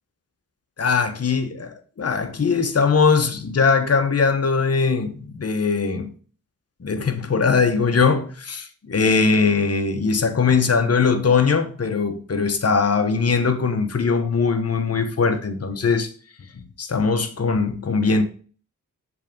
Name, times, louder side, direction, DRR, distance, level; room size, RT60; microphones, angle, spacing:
voice 1, 0.8-6.1 6.8-16.1 16.5-18.2, left 5 dB, 45° left, 1.1 m, -21 dB
6.5 x 3.5 x 5.3 m
cardioid pair, 45°, 35 cm